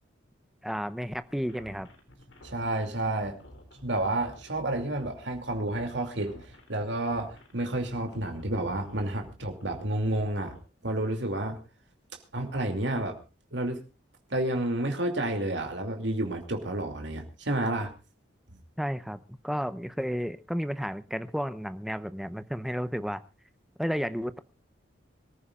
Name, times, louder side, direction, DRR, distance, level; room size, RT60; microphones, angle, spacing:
voice 1, 0.6-1.9 18.8-23.2 23.8-24.4, equal, ahead, 12 dB, 0.6 m, -32 dB
sound 1, 1.3-10.6, left 1 dB, 80° left, 3.3 m, -51 dB
voice 2, 2.4-3.4 3.8-6.4 6.7-10.5 10.8-11.6 12.3-13.2 13.5-13.8 14.3-17.9, right 1 dB, 70° right, 4 dB, 2.6 m, -30 dB
25.5 x 14.0 x 2.4 m, 0.31 s
head